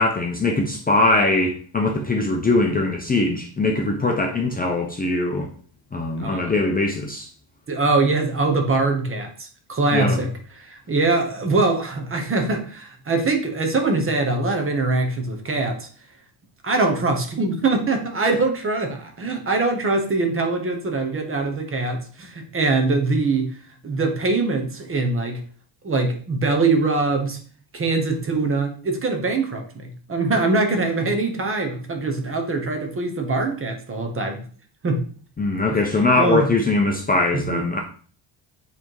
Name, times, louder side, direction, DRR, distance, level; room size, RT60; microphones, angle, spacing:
voice 1, 0.0-5.5 5.9-7.3 9.9-10.2 35.4-37.8, left 2 dB, 20° left, 1 dB, 0.7 m, -21 dB
voice 2, 6.2-6.5 7.7-10.3 10.6-15.9 16.6-23.6 23.8-25.4 25.8-27.4 27.7-34.4 34.8-35.0 36.2-36.5 37.3-37.6, right 3 dB, 25° right, 5 dB, 1.1 m, -23 dB
7.9 x 3.6 x 4.7 m, 0.43 s
cardioid pair, 160°, 49 cm